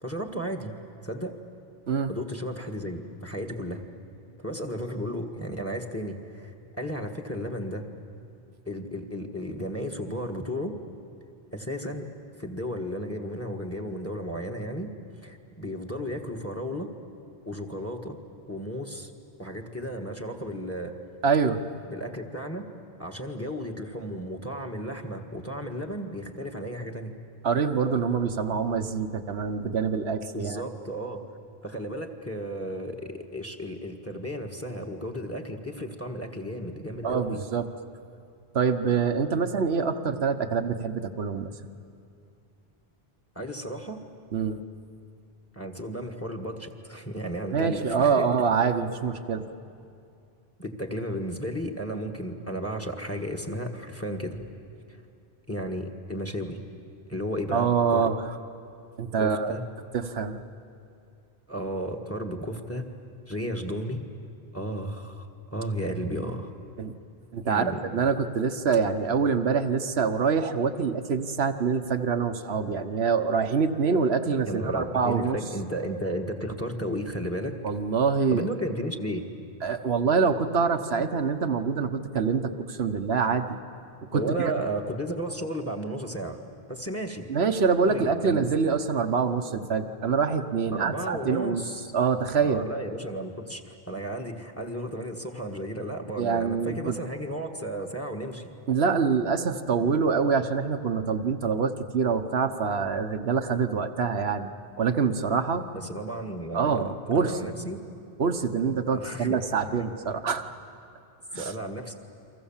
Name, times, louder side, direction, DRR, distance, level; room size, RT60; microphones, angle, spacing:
voice 1, 0.0-0.8 1.0-1.3 2.1-3.8 4.4-7.9 8.7-10.7 11.5-12.1 12.4-14.9 15.2-16.9 17.4-18.2 18.5-19.1 19.4-20.9 21.9-22.7 23.0-27.1 30.3-31.2 31.6-37.4 39.7-39.8 43.3-44.0 45.5-48.3 50.6-54.4 55.5-56.6 57.1-58.1 59.2-59.6 61.5-62.9 63.3-64.0 64.5-65.3 65.5-66.5 67.4-67.8 74.4-77.6 78.3-79.2 84.1-86.4 86.7-87.3 87.8-88.5 90.7-91.9 92.3-98.5 105.7-106.8 107.1-107.8 108.9-109.4 111.4-112.0, equal, 15° left, 5 dB, 1.6 m, -34 dB
voice 2, 21.2-21.6 27.4-30.6 37.0-37.7 38.5-41.5 44.3-44.6 47.5-49.4 57.5-58.4 59.0-59.6 59.9-60.4 66.8-66.9 67.3-75.4 77.6-78.5 79.6-83.6 84.1-84.5 87.3-91.6 91.9-92.6 96.2-97.0 98.7-104.5 104.8-105.7 106.5-107.4 108.2-110.4 111.3-111.5, right 5 dB, 85° right, 6 dB, 1.3 m, -25 dB
30.0 x 24.0 x 7.3 m, 2.5 s
omnidirectional pair, 1.0 m